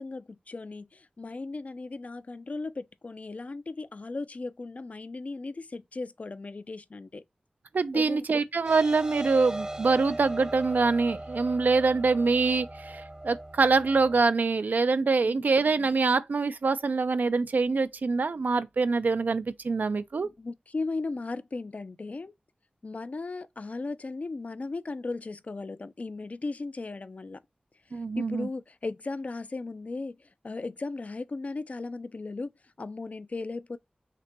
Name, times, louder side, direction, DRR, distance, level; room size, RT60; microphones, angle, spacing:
voice 1, 0.0-7.2 7.9-8.2 15.2-15.5 20.2-22.3 22.8-27.4 28.2-30.2 30.4-32.5 32.8-33.8, left 3 dB, 55° left, 0.3 m, -36 dB
voice 2, 7.7-20.3 27.9-28.5, right 4 dB, 85° right, 0.3 m, -25 dB
sound 1, 8.6-14.2, right 1 dB, 25° right, 0.5 m, -38 dB
5.8 x 2.1 x 2.9 m
wide cardioid pair, 75°, 3 cm